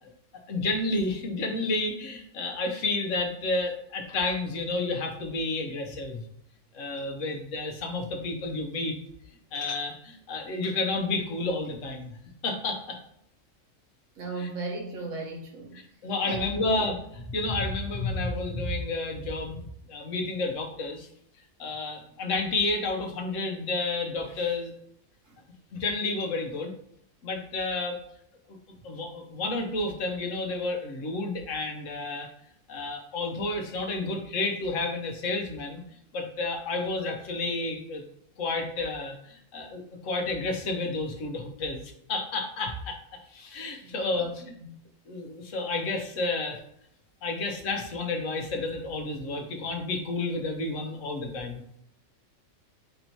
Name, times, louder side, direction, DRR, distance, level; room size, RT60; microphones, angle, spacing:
voice 1, 0.0-6.2 6.7-9.0 9.5-12.2 12.4-13.0 14.4-14.5 15.7-19.6 19.9-21.1 21.6-24.7 25.7-26.7 27.2-28.0 28.8-32.3 32.7-35.8 36.1-38.0 38.4-43.0 43.3-44.5 45.1-46.6 47.2-51.6, left 3 dB, 70° left, 3 dB, 1.2 m, -31 dB
voice 2, 14.2-15.8 16.2-16.7 25.3-25.4 43.8-44.3 44.6-44.8, right 2 dB, 70° right, 0 dB, 1.4 m, -36 dB
4.4 x 2.7 x 4.4 m, 0.69 s
omnidirectional pair, 1.4 m